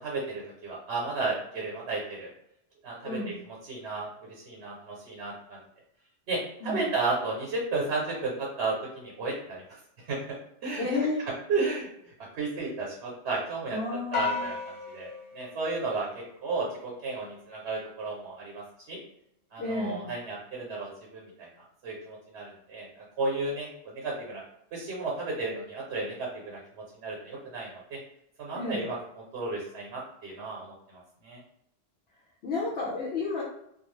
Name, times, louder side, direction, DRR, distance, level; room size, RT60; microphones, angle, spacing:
voice 1, 0.0-2.3 2.8-5.6 6.3-9.6 10.1-10.2 10.6-10.9 11.5-13.8 14.1-14.6 14.9-19.0 19.5-21.5 21.8-24.4 24.7-28.0 28.4-31.4, right 3 dB, 80° right, -3 dB, 0.9 m, -33 dB
voice 2, 3.0-3.4 6.6-6.8 10.8-11.2 13.7-14.5 19.6-20.1 28.5-28.8 32.4-33.4, left 3 dB, 75° left, -5 dB, 0.9 m, -31 dB
sound 1, 14.1-16.7, left 4 dB, 35° left, 0.5 m, -35 dB
2.4 x 2.3 x 3.1 m, 0.76 s
omnidirectional pair, 1.1 m